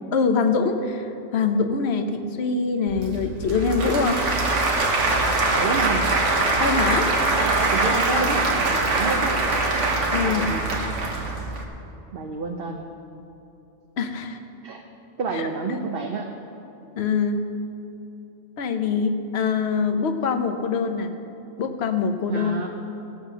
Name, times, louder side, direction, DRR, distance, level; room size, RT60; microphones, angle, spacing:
voice 1, 0.1-4.2 6.6-7.1 8.1-8.4 10.1-10.4 14.0-14.4 15.3-15.8 17.0-17.5 18.6-21.1 21.6-22.6, left 5 dB, 65° left, 7 dB, 1.1 m, -24 dB
Applause / Crowd, 2.9-11.6, right 2 dB, 85° right, 1.6 m, -23 dB
voice 2, 5.5-6.1 7.3-9.4 10.2-10.9 12.1-12.9 14.6-14.8 15.2-16.3 22.3-22.7, right 4 dB, 55° right, 2 dB, 1.0 m, -29 dB
16.0 x 7.4 x 6.1 m, 2.9 s
omnidirectional pair, 1.2 m